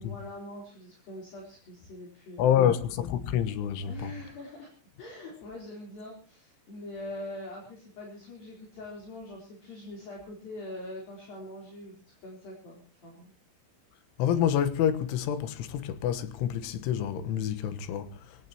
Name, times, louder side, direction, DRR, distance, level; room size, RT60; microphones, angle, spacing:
voice 1, 0.0-2.7 3.9-4.7 5.0-13.3, left 1 dB, 50° left, 5.3 m, -43 dB
voice 2, 2.4-4.1 14.2-18.1, left 9 dB, 90° left, 3.7 m, -27 dB
23.5 x 17.5 x 3.0 m
omnidirectional pair, 5.5 m